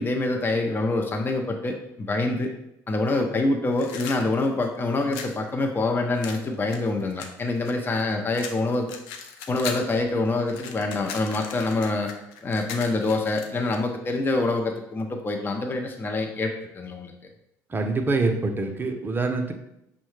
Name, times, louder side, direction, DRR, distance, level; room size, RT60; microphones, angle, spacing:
voice 1, 0.0-2.5 2.9-8.9 9.5-12.1 12.4-17.1, left 2 dB, 25° left, 2 dB, 0.6 m, -26 dB
sound 1, 3.7-5.4 6.2-8.0 8.3-9.9 10.3-13.8, left 6 dB, 75° left, 0.5 m, -38 dB
voice 2, 17.7-19.5, right 3 dB, 25° right, 5 dB, 0.6 m, -25 dB
5.4 x 2.1 x 3.2 m, 0.82 s
hypercardioid pair, 65°, 8 cm